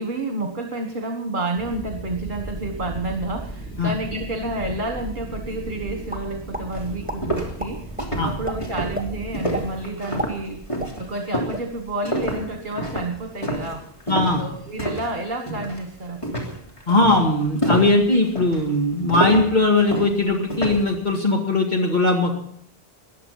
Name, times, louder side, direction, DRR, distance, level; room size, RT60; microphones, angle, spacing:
voice 1, 0.0-7.9 8.2-10.6 11.0-13.9 14.4-16.4, right 2 dB, 50° right, 3 dB, 1.7 m, -30 dB
sound 1, 1.6-9.9, right 2 dB, 10° left, 3.0 m, -36 dB
sound 2, 6.1-6.7 7.1-7.2 7.6-8.1 8.4-8.6 8.9-9.1 9.5-9.7 10.0-11.2 11.5-11.6 12.0-12.4, right 1 dB, 10° right, 1.9 m, -31 dB
sound 3, 6.2-6.3 6.7-15.2 15.5-15.9 16.2-20.9, right 1 dB, 30° left, 3.3 m, -28 dB
voice 2, 14.1-14.5 16.9-22.4, left 2 dB, 45° left, 0 dB, 2.3 m, -19 dB
19.5 x 12.0 x 5.7 m, 0.67 s
omnidirectional pair, 1.1 m